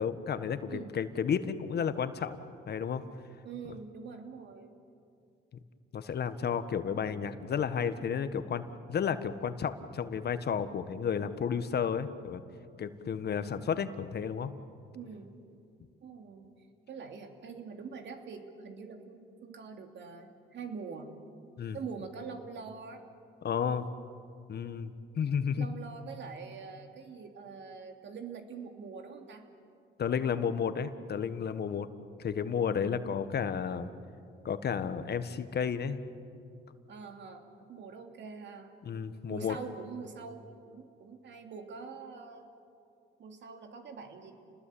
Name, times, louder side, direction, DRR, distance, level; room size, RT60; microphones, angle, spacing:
voice 1, 0.0-2.4 2.7-3.0 5.9-12.4 12.8-14.5 21.6-21.8 23.4-23.9 24.5-25.7 30.0-31.9 32.2-33.9 34.4-36.0 38.8-39.6, left 7 dB, 55° left, 11 dB, 1.4 m, -32 dB
voice 2, 3.4-4.7 14.9-15.3 16.0-16.5 16.9-21.1 21.7-23.0 25.5-29.4 33.1-33.2 36.9-38.7 39.3-42.5 43.2-44.3, right 5 dB, 65° right, 4 dB, 3.0 m, -44 dB
29.5 x 20.5 x 8.6 m, 2.4 s
cardioid pair, 90°, 20 cm